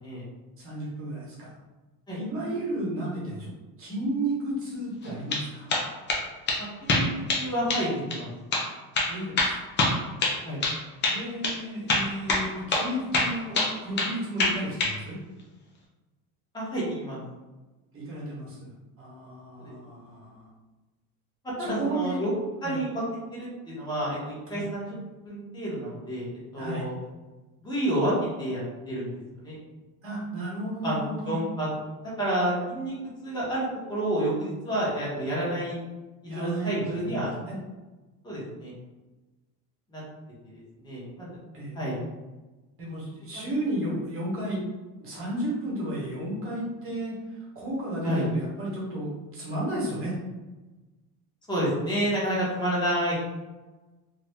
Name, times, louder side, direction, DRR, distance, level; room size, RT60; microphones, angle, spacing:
voice 1, 0.6-1.5 2.1-3.5 3.8-5.7 9.1-9.5 11.1-15.2 17.9-20.5 21.6-22.2 22.6-22.8 24.5-24.7 26.5-26.9 30.0-31.3 36.2-37.6 41.5-41.8 42.8-44.6 45.0-50.2, right 1 dB, 35° right, -5 dB, 1.4 m, -33 dB
sound 1, 5.0-5.4 5.7-6.2 6.5-6.6 6.9-7.4 7.7-7.8 8.1-8.2 8.5-8.7 9.0-10.8 11.0-11.2 11.4-11.6 11.9-12.9 13.1-14.1 14.4-14.9, left 2 dB, 30° left, 0.6 m, -25 dB
voice 2, 6.6-7.1 7.4-8.3 10.4-10.6 16.5-17.2 19.6-19.7 21.6-22.3 22.6-23.0 23.3-25.0 25.2-26.3 26.5-27.0 27.6-29.1 29.4-29.6 30.8-31.7 32.2-32.9 33.2-35.8 36.3-37.3 38.2-38.7 39.9-40.0 40.5-41.3 41.7-42.0 48.0-48.3 51.5-53.1, right 1 dB, 10° left, -8 dB, 1.3 m, -29 dB
2.8 x 2.6 x 3.5 m, 1.2 s
cardioid pair, 145°, 39 cm